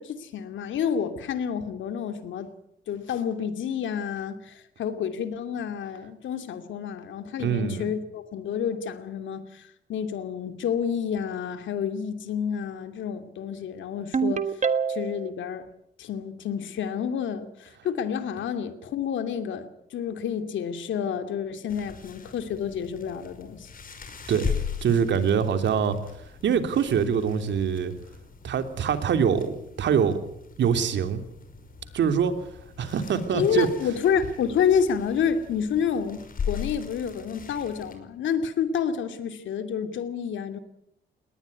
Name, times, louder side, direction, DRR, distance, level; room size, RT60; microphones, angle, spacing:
voice 1, 0.0-2.5 2.9-14.4 14.9-15.7 16.0-23.7 33.3-40.6, left 7 dB, 75° left, 9 dB, 2.7 m, -29 dB
voice 2, 7.4-7.9 24.3-24.6 24.8-26.0 26.4-27.9 28.4-30.2 30.6-31.2 31.9-32.5 32.8-33.7, right 7 dB, 65° right, 8 dB, 3.1 m, -24 dB
Ringtone, 14.1-15.3, right 6 dB, 35° right, 1.5 m, -25 dB
sound 1, 21.7-37.9, left 7 dB, 45° left, 5.5 m, -39 dB
20.5 x 19.5 x 9.6 m, 0.75 s
cardioid pair, 90°, 20 cm